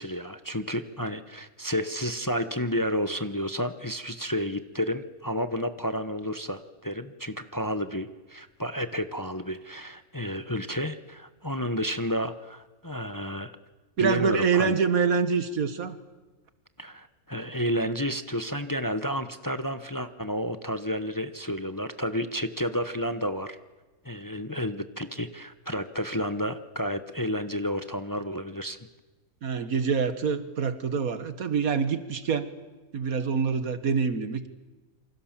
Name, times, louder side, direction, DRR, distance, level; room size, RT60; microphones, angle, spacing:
voice 1, 0.0-13.5 14.0-14.7 16.8-23.6 24.0-28.8, equal, 15° left, 10 dB, 0.9 m, -31 dB
voice 2, 14.0-16.0 29.4-32.5 32.9-34.5, right 5 dB, 85° right, 11 dB, 2.0 m, -26 dB
28.0 x 24.5 x 7.5 m, 1.2 s
omnidirectional pair, 1.4 m